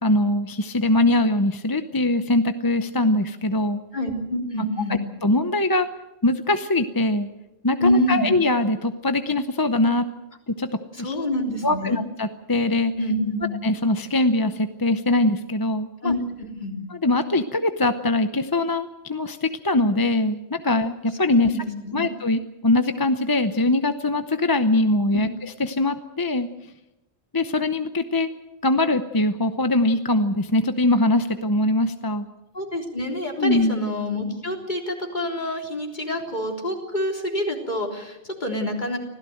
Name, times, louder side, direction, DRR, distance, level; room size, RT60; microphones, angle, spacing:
voice 1, 0.0-3.8 5.2-5.9 6.2-7.3 7.6-10.0 10.5-10.7 11.0-11.2 11.6-12.9 13.6-16.1 17.0-21.5 21.9-26.5 27.3-28.3 28.6-32.3 33.4-33.8, left 2 dB, 20° left, 8 dB, 0.7 m, -22 dB
voice 2, 3.9-4.9 7.8-8.3 10.9-12.0 12.9-13.5 16.0-16.7 21.3-22.0 25.1-25.3 32.5-39.0, left 1 dB, 40° left, 1 dB, 3.7 m, -26 dB
25.5 x 16.5 x 7.8 m, 0.95 s
omnidirectional pair, 1.2 m